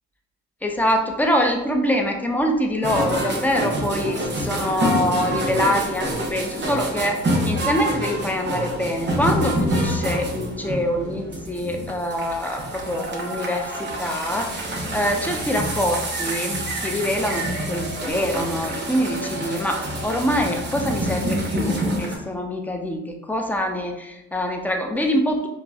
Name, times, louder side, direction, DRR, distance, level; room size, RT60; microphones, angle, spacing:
voice 1, 0.6-25.5, left 1 dB, 5° left, 2 dB, 0.4 m, -25 dB
sound 1, 2.8-22.2, right 1 dB, 35° right, 0.8 m, -27 dB
4.0 x 2.0 x 2.3 m, 0.96 s
cardioid pair, 90°, 30 cm